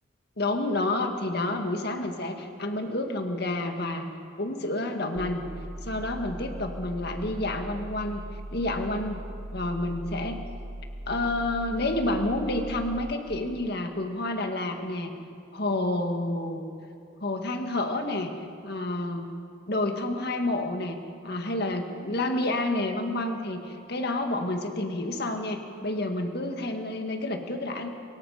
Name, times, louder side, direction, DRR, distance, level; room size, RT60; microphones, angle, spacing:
voice 1, 0.4-4.1 4.4-5.5 5.8-8.2 8.5-9.2 9.5-10.4 11.1-15.1 15.5-16.6 17.2-18.3 18.6-19.3 19.7-21.0 21.2-27.9, left 2 dB, 50° left, 5 dB, 1.9 m, -29 dB
sound 1, 5.1-13.1, equal, 45° right, 1.7 m, -39 dB
24.0 x 22.5 x 5.0 m, 2.7 s
head